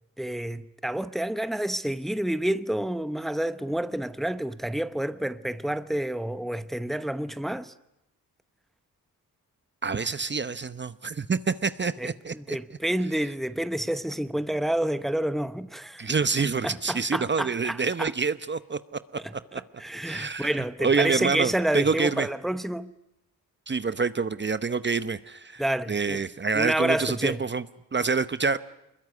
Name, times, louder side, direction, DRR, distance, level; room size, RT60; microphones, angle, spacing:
voice 1, 0.2-7.7 12.0-16.1 16.6-18.1 19.8-22.9 25.6-26.2 26.5-27.4, right 1 dB, ahead, 0.9 m, -29 dB
voice 2, 9.8-12.6 16.0-19.0 19.5-19.6 20.0-22.3 23.7-25.6 25.9-27.6 27.9-28.6, right 4 dB, 30° right, 0.9 m, -27 dB
24.5 x 21.5 x 9.6 m
cardioid pair, 80°, 35 cm